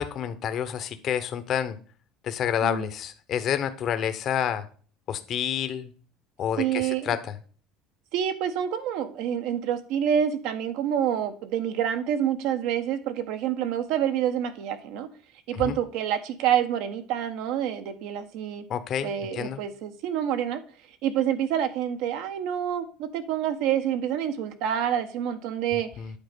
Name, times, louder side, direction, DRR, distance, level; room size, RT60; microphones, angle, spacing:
voice 1, 0.0-1.8 2.2-4.6 5.1-5.9 6.4-7.2 15.5-15.8 18.7-19.6 26.0-26.1, left 9 dB, 40° left, 10 dB, 0.8 m, -29 dB
voice 2, 6.6-7.2 8.1-15.1 15.5-18.6 19.0-20.6 21.0-25.9, right 9 dB, 70° right, 9 dB, 1.1 m, -27 dB
8.6 x 4.3 x 5.2 m, 0.41 s
cardioid pair, 140°, 0 cm